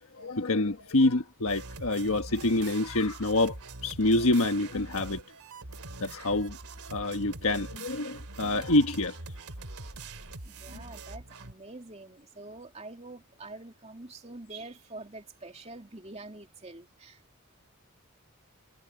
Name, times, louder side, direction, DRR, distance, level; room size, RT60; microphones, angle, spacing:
voice 1, 0.2-3.6 3.8-5.2 6.0-6.6 6.9-9.2, left 2 dB, 75° left, 1.4 m, -26 dB
sound 1, 1.4-11.5, right 3 dB, 90° right, 2.8 m, -43 dB
voice 2, 10.4-17.2, right 2 dB, 30° right, 2.8 m, -46 dB
head